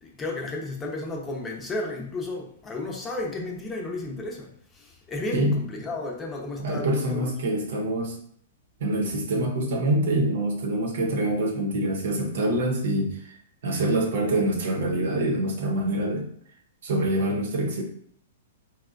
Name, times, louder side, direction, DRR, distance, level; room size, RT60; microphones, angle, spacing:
voice 1, 0.0-7.6, left 2 dB, 15° left, -1 dB, 0.7 m, -33 dB
voice 2, 6.6-8.1 8.8-13.4 13.6-16.3 16.8-17.8, right 1 dB, 65° right, 1 dB, 0.8 m, -25 dB
4.1 x 2.2 x 2.5 m, 0.62 s
hypercardioid pair, 115°, 0 cm